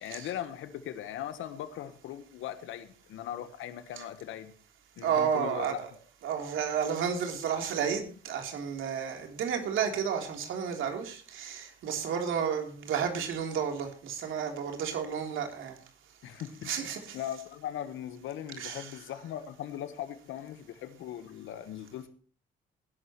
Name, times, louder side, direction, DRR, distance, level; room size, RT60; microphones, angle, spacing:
voice 1, 0.0-4.5 5.0-5.8 16.2-22.1, left 11 dB, 85° left, 1.3 m, -39 dB
voice 2, 5.0-5.9 6.2-15.8 16.6-17.2 18.6-19.0, right 7 dB, 80° right, 3.5 m, -32 dB
20.0 x 11.5 x 3.1 m
cardioid pair, 90°, 20 cm